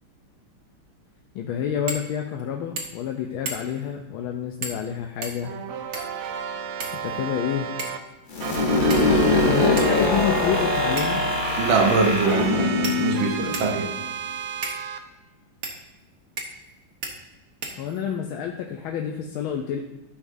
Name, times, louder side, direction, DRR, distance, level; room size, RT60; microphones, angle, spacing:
voice 1, 1.3-5.5 7.0-7.7 9.4-11.2 17.8-19.8, left 8 dB, 75° left, 2 dB, 1.4 m, -28 dB
sound 1, 1.9-2.1 2.4-2.5 2.8-3.1 3.5-3.8 4.6-4.9 5.2-6.2 6.8-7.4 7.8-8.1 8.9-9.3 9.8-9.9 11.0-11.3 12.1-12.2 12.8-13.8 14.6-14.8 15.6-15.8 16.4-16.7 17.0-17.1 17.6-18.2, right 3 dB, 50° right, 1.4 m, -34 dB
sound 2, 5.4-8.0 8.4-15.0, right 7 dB, 90° right, 1.6 m, -33 dB
sound 3, 8.3-14.0, left 2 dB, 45° left, 0.6 m, -22 dB
voice 2, 11.6-13.9, right 4 dB, 70° right, 3 dB, 1.8 m, -23 dB
12.5 x 5.6 x 2.6 m, 1.0 s
omnidirectional pair, 2.3 m